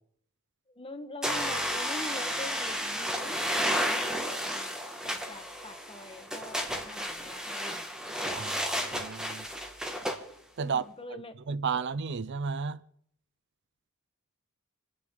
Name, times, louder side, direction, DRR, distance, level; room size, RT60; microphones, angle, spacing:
voice 1, 0.7-4.8 5.0-7.9 10.6-11.3, left 2 dB, 25° left, 1.4 m, -44 dB
sound 1, 1.2-10.2, equal, 5° right, 1.9 m, -32 dB
voice 2, 8.4-9.5 10.6-10.8 11.1-11.2 11.5-12.8, right 5 dB, 55° right, 0.5 m, -33 dB
29.0 x 10.0 x 3.9 m
head